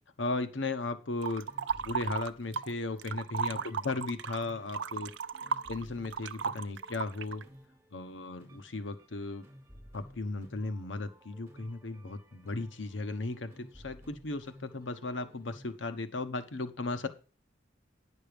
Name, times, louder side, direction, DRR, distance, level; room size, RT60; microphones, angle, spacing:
voice 1, 0.2-1.5 1.8-5.1 5.7-7.4 7.9-9.4 9.9-17.1, left 3 dB, 80° left, 10 dB, 1.0 m, -36 dB
sound 1, 1.2-15.8, equal, 15° right, 3.2 m, -56 dB
sound 2, 1.2-2.7 3.0-7.4, right 6 dB, 75° right, 0.5 m, -35 dB
10.5 x 6.6 x 5.1 m, 0.36 s
head